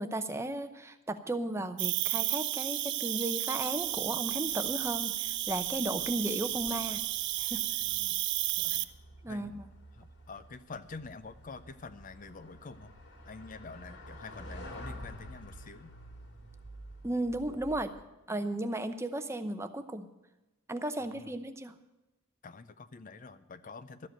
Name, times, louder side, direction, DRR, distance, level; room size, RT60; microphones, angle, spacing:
voice 1, 0.0-7.0 7.4-7.6 9.2-9.7 17.0-17.9 18.3-20.1 20.7-21.8, right 1 dB, 15° right, 9 dB, 0.7 m, -35 dB
Cricket, 1.8-8.8, right 15 dB, 55° right, 0.5 m, -32 dB
sound 1, 3.8-18.0, equal, 55° left, 2.5 m, -50 dB
voice 2, 7.8-8.3 8.6-8.9 9.3-9.6 9.9-12.9 13.2-15.9 21.0-21.3 22.4-24.1, left 4 dB, 40° left, 12 dB, 0.5 m, -47 dB
12.5 x 7.6 x 8.9 m, 1.0 s
head